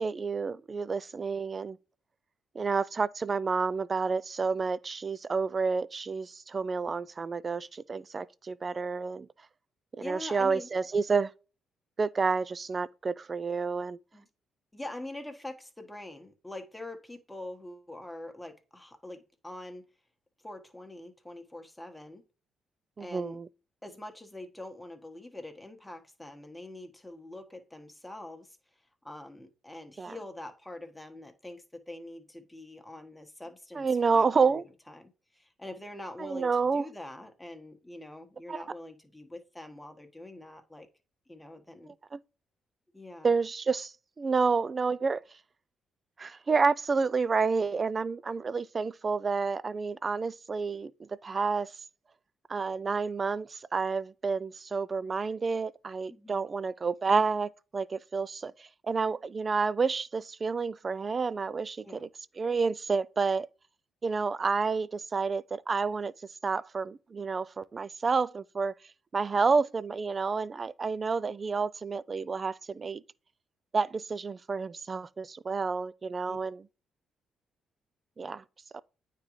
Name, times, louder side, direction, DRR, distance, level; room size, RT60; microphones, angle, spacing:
voice 1, 0.0-1.8 2.6-9.3 10.0-11.3 12.0-14.0 23.0-23.5 30.0-30.2 33.8-34.6 36.2-36.9 38.5-38.6 42.1-42.2 43.2-45.2 46.2-51.7 52.5-62.1 62.4-63.5 64.0-66.1 66.4-68.8 69.1-73.0 73.7-76.6 78.2-78.4 78.7-78.8, right 4 dB, 35° right, 0.3 m, -29 dB
voice 2, 10.0-10.7 14.1-14.3 14.7-19.9 20.4-22.2 23.0-23.4 23.8-28.6 29.0-34.6 34.9-40.9 41.3-41.9 42.9-43.3 56.1-56.4 61.8-62.1 76.3-76.4, left 1 dB, 10° left, 1.2 m, -44 dB
9.1 x 3.7 x 3.1 m
cardioid pair, 90°, 0 cm